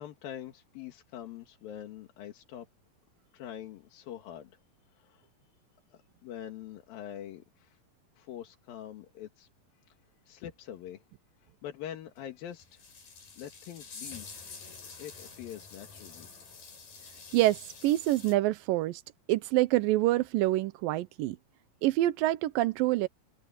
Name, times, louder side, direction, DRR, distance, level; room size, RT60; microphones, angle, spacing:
voice 1, 0.0-2.7 3.3-4.6 4.9-5.3 5.9-7.8 8.2-9.5 9.9-10.0 10.3-11.0 11.4-12.8 13.4-14.3 15.0-16.3, left 10 dB, 85° left, 3.5 m, -44 dB
sound 1, 12.2-12.3 12.6-18.3, left 5 dB, 70° left, 7.5 m, -48 dB
voice 2, 17.3-19.0 19.3-21.4 21.8-23.1, right 16 dB, 90° right, 2.5 m, -26 dB
omnidirectional pair, 4.0 m